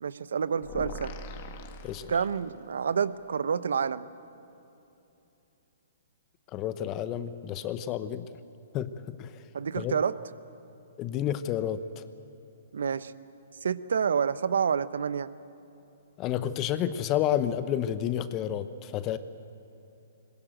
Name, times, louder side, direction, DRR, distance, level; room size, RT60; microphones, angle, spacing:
voice 1, 0.0-1.1 2.1-4.1 9.5-10.2 12.7-13.1 13.6-15.3, right 6 dB, 75° right, 16 dB, 0.8 m, -28 dB
sound 1, 0.6-2.7, left 2 dB, 45° left, 2.0 m, -41 dB
voice 2, 6.5-8.3 8.7-9.3 9.8-10.0 11.0-12.0 16.2-19.2, left 10 dB, 30° left, 13 dB, 0.9 m, -30 dB
20.5 x 20.5 x 9.1 m, 2.9 s
hypercardioid pair, 135°, 0 cm